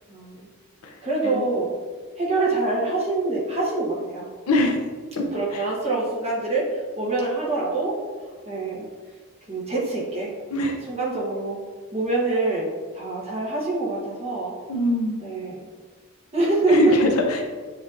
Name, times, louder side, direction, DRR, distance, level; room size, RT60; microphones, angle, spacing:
voice 1, 0.1-0.4 1.0-1.7 2.2-4.3 5.3-6.6 7.0-7.9 8.5-8.8 9.5-10.3 10.9-11.6 11.9-12.7 12.9-14.5 15.2-15.6 16.3-17.0, right 2 dB, 30° right, -5 dB, 1.0 m, -25 dB
voice 2, 4.5-4.8 5.2-5.3 5.5-5.6 10.5-10.8 14.7-15.2 16.7-17.5, left 1 dB, 90° left, 3 dB, 0.6 m, -23 dB
7.0 x 2.8 x 2.5 m, 1.5 s
head